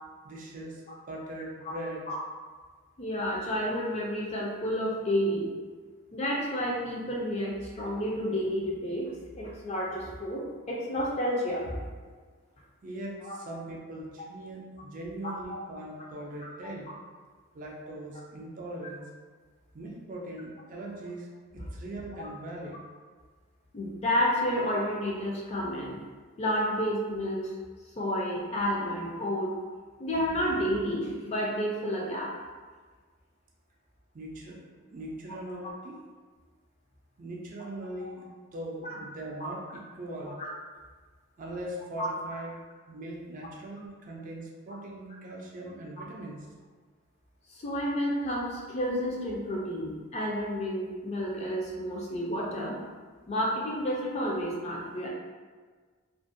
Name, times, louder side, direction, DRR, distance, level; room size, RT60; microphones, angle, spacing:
voice 1, 0.2-2.0 12.8-17.0 17.5-19.1 19.7-21.3 21.5-22.8 34.1-34.6 34.9-36.0 37.2-40.4 41.4-42.5 42.9-46.5, right 1 dB, 40° right, -2 dB, 0.3 m, -40 dB
voice 2, 3.0-5.5 6.1-9.1 9.4-11.7 13.3-13.4 15.2-15.6 16.4-16.5 16.9-17.0 22.1-22.3 23.7-26.0 26.4-27.5 28.0-29.5 30.0-32.3 38.0-38.1 38.8-39.0 40.4-40.5 42.0-42.1 47.5-52.8 53.3-55.1, equal, 30° left, -3 dB, 0.4 m, -30 dB
2.4 x 2.1 x 2.5 m, 1.5 s
head